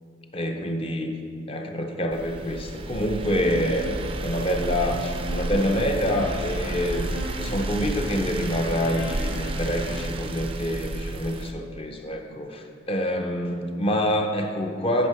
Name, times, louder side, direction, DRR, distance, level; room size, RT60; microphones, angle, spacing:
voice 1, 0.3-1.2 1.5-15.1, equal, 30° left, 4 dB, 0.5 m, -27 dB
sound 1, 2.1-11.5, right 2 dB, 30° right, 0.4 m, -32 dB
sound 2, 3.3-10.0, equal, 60° left, 1.6 m, -38 dB
8.4 x 6.1 x 4.6 m, 2.2 s
head